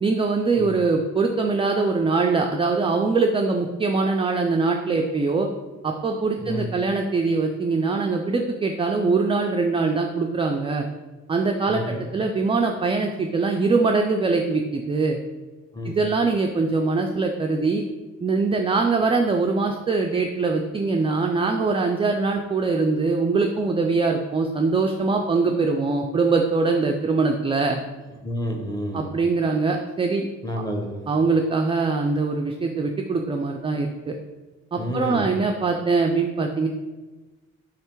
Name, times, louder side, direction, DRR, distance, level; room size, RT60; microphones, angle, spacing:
voice 1, 0.0-5.5 5.8-10.9 11.3-15.2 15.8-17.8 18.2-27.8 28.9-30.3 31.1-34.1 34.7-36.7, right 4 dB, 20° right, 2 dB, 0.3 m, -22 dB
voice 2, 11.7-12.1 15.7-15.9 28.2-29.1 30.4-30.9 34.8-35.3, equal, 10° left, 2 dB, 0.9 m, -29 dB
3.7 x 3.2 x 4.5 m, 1.2 s
cardioid pair, 90°, 30 cm